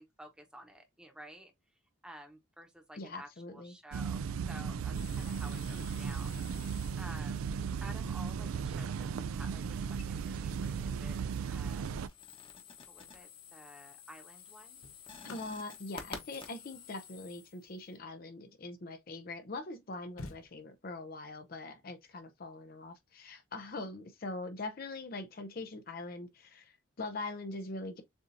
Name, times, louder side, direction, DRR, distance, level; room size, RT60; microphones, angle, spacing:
voice 1, 0.0-1.5 2.0-6.7 7.0-7.5 7.8-11.2 11.5-12.0 12.9-14.8, equal, 5° right, 1.0 m, -52 dB
voice 2, 3.0-3.7 15.2-28.0, left 2 dB, 45° left, 0.5 m, -42 dB
sound 1, 3.9-12.1, right 6 dB, 80° right, 0.3 m, -36 dB
sound 2, 4.9-7.4 9.8-10.9 11.3-18.0, left 5 dB, 25° left, 0.9 m, -52 dB
sound 3, 13.3-13.5 14.4-19.0 19.5-19.6 19.8-21.1 22.7-23.0, left 2 dB, 85° left, 0.9 m, -53 dB
7.0 x 2.7 x 2.6 m
head